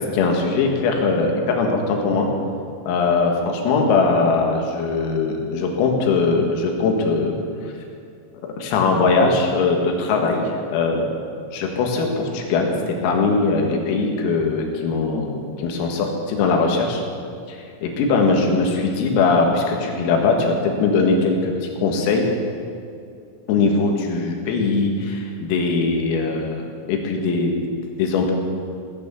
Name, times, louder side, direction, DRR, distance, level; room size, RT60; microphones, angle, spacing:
voice 1, 0.0-2.3 2.9-7.4 8.6-11.1 11.5-17.0 17.5-22.3 23.5-28.3, left 4 dB, 90° left, 2 dB, 4.4 m, -21 dB
17.5 x 9.2 x 7.0 m, 2.4 s
omnidirectional pair, 5.9 m